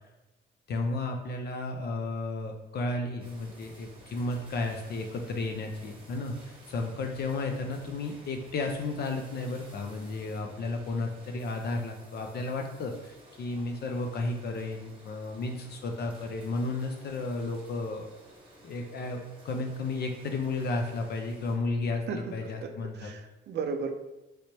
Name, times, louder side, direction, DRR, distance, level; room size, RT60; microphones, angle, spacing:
voice 1, 0.7-18.1 18.6-23.1, left 2 dB, 55° left, 4 dB, 0.5 m, -33 dB
sound 1, 3.2-21.6, right 1 dB, 25° right, 1.2 m, -54 dB
voice 2, 22.1-23.9, right 5 dB, 60° right, 6 dB, 0.4 m, -35 dB
3.2 x 3.0 x 2.9 m, 0.99 s
cardioid pair, 90°, 20 cm